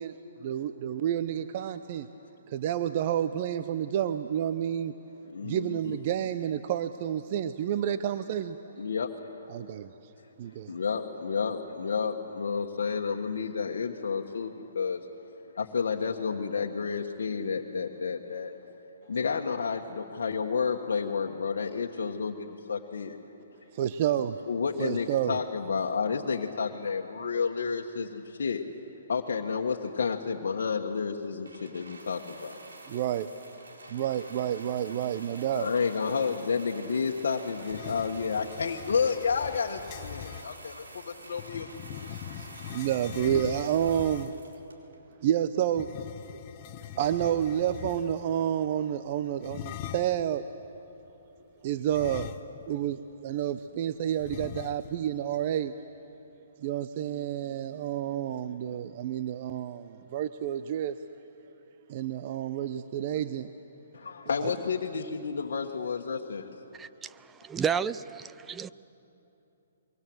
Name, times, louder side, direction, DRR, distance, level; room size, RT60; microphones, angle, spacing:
voice 1, 0.0-2.1 2.5-4.9 5.4-8.6 9.5-10.1 10.4-10.7 23.7-24.4 24.8-25.4 32.9-33.3 33.9-35.7 42.4-44.3 45.2-45.9 46.9-50.5 51.6-52.3 52.7-55.7 56.6-61.0 61.9-63.5 64.4-64.5, right 10 dB, 45° right, 0.7 m, -30 dB
voice 2, 5.3-5.8 8.8-9.1 10.7-15.0 15.6-18.5 19.1-23.2 24.5-28.6 29.1-32.6 35.5-41.7 63.9-66.5, left 5 dB, 70° left, 1.4 m, -30 dB
sound 1, 31.4-45.1 45.9-46.0, right 2 dB, 85° right, 4.2 m, -48 dB
sound 2, 37.6-40.5 41.4-44.5 45.7-48.3 49.4-50.3 51.9-52.8 53.1-53.2 54.2-55.1, left 11 dB, 35° left, 0.9 m, -42 dB
voice 3, 66.8-68.7, right 7 dB, 15° right, 0.5 m, -32 dB
24.0 x 23.0 x 7.9 m
hypercardioid pair, 135°, 0 cm